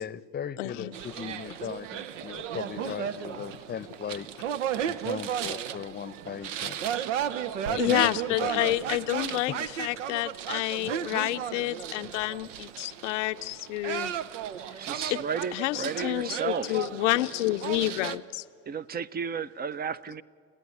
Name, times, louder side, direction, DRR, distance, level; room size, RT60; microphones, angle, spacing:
voice 1, 0.0-4.3 4.9-6.8 7.7-8.1 8.4-8.5 10.9-11.0, left 8 dB, 25° left, 19 dB, 0.8 m, -38 dB
voice 2, 0.6-1.0 7.7-14.1 15.5-18.4, left 17 dB, 75° left, 13 dB, 0.6 m, -29 dB
sound 1, 0.9-18.2, right 9 dB, 80° right, 0.8 m, -34 dB
voice 3, 14.8-16.8 18.7-20.2, right 6 dB, 25° right, 17 dB, 0.6 m, -33 dB
29.5 x 10.0 x 9.7 m, 2.3 s
hypercardioid pair, 70°, 37 cm